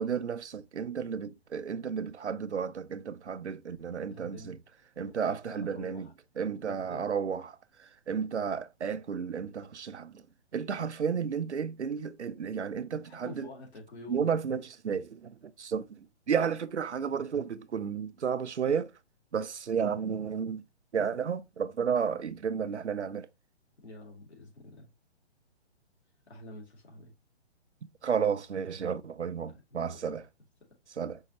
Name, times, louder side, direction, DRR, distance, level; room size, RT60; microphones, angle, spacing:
voice 1, 0.0-4.6 5.0-6.1 6.4-7.6 8.1-10.1 10.5-13.5 14.1-18.9 19.3-20.6 20.9-23.3 28.0-30.2 31.0-31.2, right 7 dB, 90° right, 0.5 m, -32 dB
voice 2, 4.1-4.6 5.0-6.1 6.6-7.1 12.9-14.3 23.8-24.9 26.3-27.1 29.8-30.2, left 2 dB, 70° left, 2.4 m, -48 dB
5.4 x 2.8 x 2.9 m
figure-of-eight pair, 130°, 34 cm